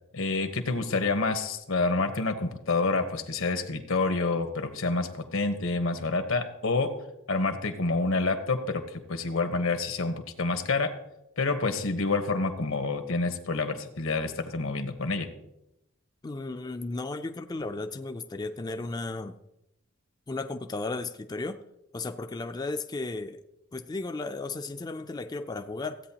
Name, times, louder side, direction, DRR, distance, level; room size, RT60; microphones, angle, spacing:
voice 1, 0.1-6.9 7.3-10.9 11.4-15.3, left 3 dB, 80° left, 7 dB, 1.2 m, -28 dB
voice 2, 16.2-19.4 20.3-21.6 21.9-23.4 23.7-26.0, left 3 dB, 20° left, 7 dB, 0.4 m, -34 dB
15.5 x 8.7 x 2.9 m, 0.87 s
head